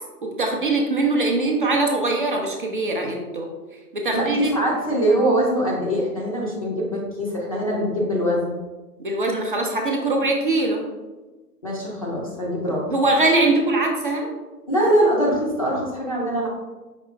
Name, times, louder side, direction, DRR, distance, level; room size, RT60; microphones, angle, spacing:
voice 1, 0.2-3.5 3.9-4.5 9.0-10.8 12.9-14.3, right 2 dB, 35° right, 1 dB, 0.5 m, -22 dB
voice 2, 4.1-8.6 11.6-12.9 14.7-16.5, equal, 25° left, -4 dB, 0.5 m, -23 dB
5.0 x 2.9 x 3.2 m, 1.2 s
figure-of-eight pair, 125°, 48 cm